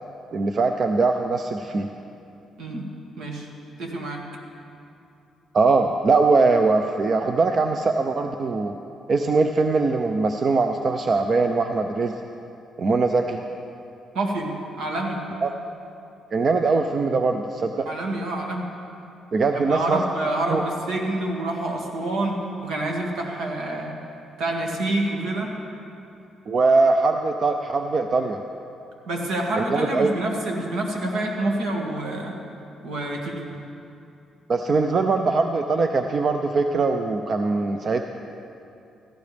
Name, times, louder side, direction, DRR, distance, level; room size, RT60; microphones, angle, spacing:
voice 1, 0.3-1.9 5.5-8.7 9.1-12.1 12.8-13.4 15.4-15.5 16.3-17.9 19.3-20.0 20.5-20.6 26.5-28.4 29.6-30.1 34.5-38.0, right 3 dB, 45° right, 6 dB, 0.6 m, -21 dB
voice 2, 3.2-3.5 3.8-4.2 14.1-15.2 17.9-18.7 19.5-23.9 24.4-25.5 29.1-32.3 32.8-33.4, right 2 dB, 80° right, 0 dB, 2.1 m, -27 dB
17.5 x 14.0 x 3.5 m, 2.7 s
cardioid pair, 90°, 0 cm